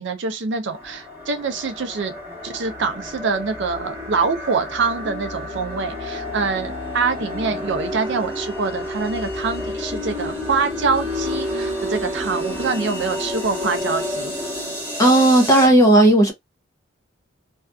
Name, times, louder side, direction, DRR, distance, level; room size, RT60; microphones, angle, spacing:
voice 1, 0.0-2.1 2.4-14.3, right 4 dB, 60° right, 0.5 m, -25 dB
sound 1, 0.7-15.7, left 1 dB, 10° right, 1.0 m, -30 dB
voice 2, 15.0-16.3, right 1 dB, 15° left, 0.6 m, -13 dB
2.6 x 2.3 x 2.3 m
head